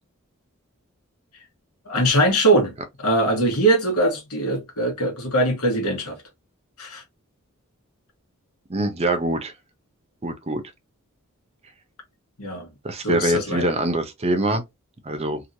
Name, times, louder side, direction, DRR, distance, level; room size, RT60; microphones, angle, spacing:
voice 1, 1.9-6.2 6.8-7.0 12.4-12.7 13.0-13.7, right 1 dB, 90° left, 1.3 m, -21 dB
voice 2, 8.7-9.5 10.2-10.6 12.8-14.6 15.1-15.4, right 1 dB, 30° right, 0.6 m, -24 dB
3.1 x 2.6 x 2.6 m
head